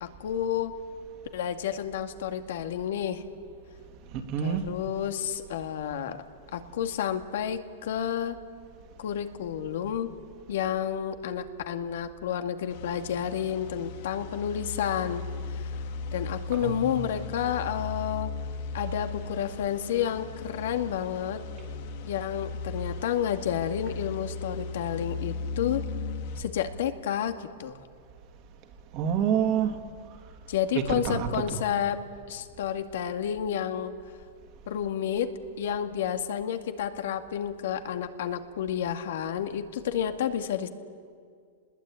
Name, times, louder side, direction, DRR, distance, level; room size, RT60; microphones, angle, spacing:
voice 1, 0.0-0.7 1.3-3.2 4.4-6.2 6.5-8.4 9.0-10.1 10.5-15.2 15.5-15.6 16.1-18.3 18.7-21.4 22.0-25.8 26.4-27.7 30.5-32.0 32.3-33.9 34.7-35.3 35.6-40.7, left 9 dB, 75° left, 6 dB, 2.1 m, -30 dB
voice 2, 4.1-4.7 16.5-17.1 28.9-29.8 30.7-31.6, right 8 dB, 40° right, 6 dB, 2.8 m, -28 dB
sound 1, 12.7-26.4, left 4 dB, 55° left, 2.4 m, -37 dB
28.5 x 21.0 x 9.0 m, 2.1 s
hypercardioid pair, 140°, 0 cm